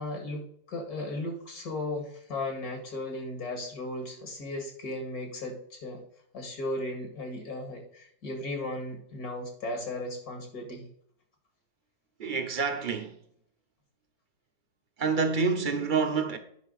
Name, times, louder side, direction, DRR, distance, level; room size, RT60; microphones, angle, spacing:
voice 1, 0.0-6.0 6.3-10.9, left 2 dB, 70° left, 2.6 m, -36 dB
voice 2, 12.2-13.2 15.0-16.4, right 5 dB, 40° right, 0.8 m, -27 dB
9.7 x 5.5 x 4.1 m
omnidirectional pair, 1.6 m